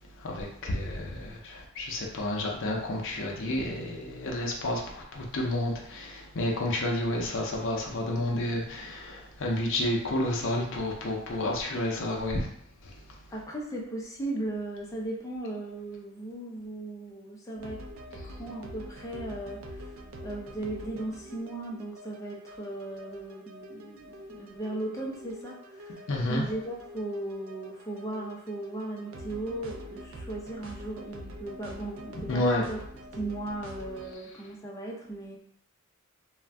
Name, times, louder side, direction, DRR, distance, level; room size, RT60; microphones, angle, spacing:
voice 1, 0.2-12.5 12.8-13.2 26.1-26.4 32.3-32.7, left 1 dB, 60° left, -1 dB, 0.6 m, -30 dB
voice 2, 13.3-17.8 18.2-19.9 20.2-32.8 33.1-35.4, right 2 dB, 15° left, -2 dB, 0.5 m, -37 dB
sound 1, 17.5-34.1, equal, 65° right, 0.4 m, -45 dB
2.5 x 2.1 x 3.3 m, 0.68 s
head